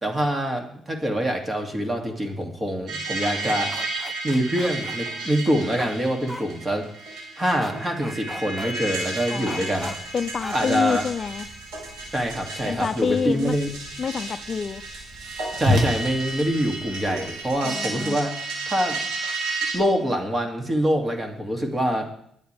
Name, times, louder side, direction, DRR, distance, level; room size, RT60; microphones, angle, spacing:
voice 1, 0.0-3.7 4.2-6.9 7.4-9.9 10.5-11.0 12.1-13.7 15.6-18.4 18.7-19.0 19.7-22.1, equal, 20° right, 3 dB, 2.6 m, -25 dB
sound 1, 2.9-19.7, right 3 dB, 85° right, 5.4 m, -33 dB
sound 2, 3.4-5.0 5.8-5.9 6.3-6.4 7.6-7.7 8.0-8.7 9.5-10.0 10.4-10.6 10.9-11.0, equal, 5° right, 1.4 m, -36 dB
voice 2, 9.3-11.5 12.7-13.6 14.0-14.8 17.6-18.2, left 6 dB, 45° left, 12 dB, 0.4 m, -28 dB
Whoosh swoosh swish, 9.7-17.5, equal, 60° right, 2.1 m, -32 dB
22.5 x 9.6 x 3.5 m, 0.67 s
cardioid pair, 90°, 0 cm